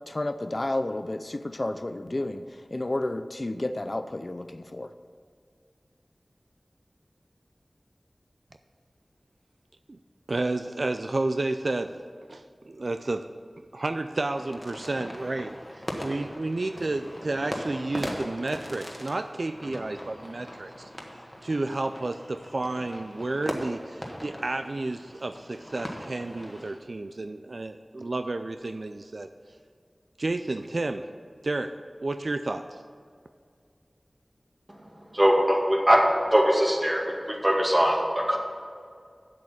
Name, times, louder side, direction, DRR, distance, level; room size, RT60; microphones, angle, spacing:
voice 1, 0.1-4.9, left 2 dB, 45° left, 9 dB, 0.5 m, -31 dB
voice 2, 10.3-12.0 12.3-13.3 13.7-20.9 21.4-29.3 30.2-31.1 31.4-32.8, right 2 dB, 70° right, 8 dB, 0.4 m, -31 dB
sound 1, 14.3-26.8, equal, 15° left, 1.5 m, -39 dB
voice 3, 34.7-36.0 36.3-38.4, equal, 30° right, -2 dB, 2.3 m, -22 dB
7.7 x 7.6 x 6.9 m, 2.2 s
wide cardioid pair, 55°, 0 cm